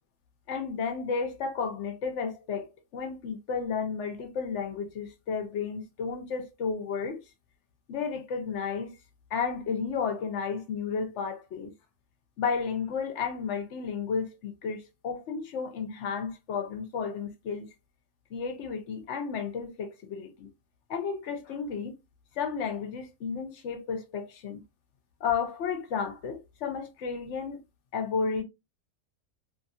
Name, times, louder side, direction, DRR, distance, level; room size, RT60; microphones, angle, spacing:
voice 1, 0.5-7.2 7.9-8.9 9.3-11.7 12.4-17.7 18.3-20.5 20.9-21.9 22.4-24.6 25.2-27.6 27.9-28.4, left 5 dB, 60° left, 0.9 m, -32 dB
2.7 x 2.5 x 2.5 m
omnidirectional pair, 1.5 m